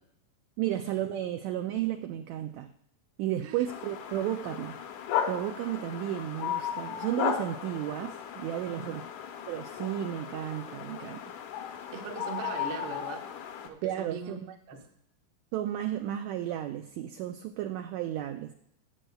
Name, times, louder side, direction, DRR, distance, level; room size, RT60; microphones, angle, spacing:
voice 1, 0.6-2.7 3.2-4.8 5.3-9.0 9.5-11.2 13.8-14.6 15.5-18.5, right 12 dB, 85° right, 6 dB, 1.6 m, -33 dB
sound 1, 3.7-13.7, left 9 dB, 75° left, 2.0 m, -36 dB
voice 2, 11.9-13.2 13.6-14.4 14.7-14.8, right 5 dB, 65° right, 3 dB, 1.1 m, -40 dB
17.5 x 7.7 x 2.3 m, 0.73 s
omnidirectional pair, 3.7 m